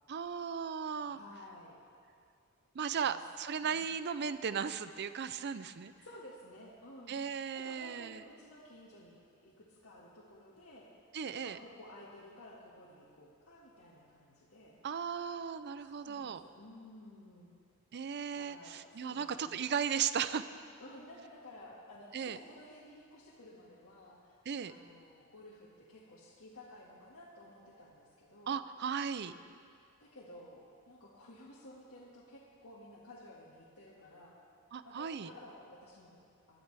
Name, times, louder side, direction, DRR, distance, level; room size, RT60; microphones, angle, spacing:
voice 1, 0.1-1.2 2.7-5.9 7.1-8.2 11.1-11.6 14.8-16.4 17.9-20.4 22.1-22.4 24.5-24.7 28.5-29.3 34.7-35.3, right 7 dB, 50° right, 13 dB, 0.4 m, -36 dB
voice 2, 1.1-1.8 2.9-3.2 3.6-3.8 6.0-7.2 7.5-10.9 11.3-14.8 15.8-17.5 18.3-19.6 20.8-24.4 24.7-28.5 30.0-34.4 34.8-36.6, left 1 dB, 75° left, -8 dB, 1.9 m, -54 dB
21.0 x 12.0 x 3.4 m, 2.2 s
head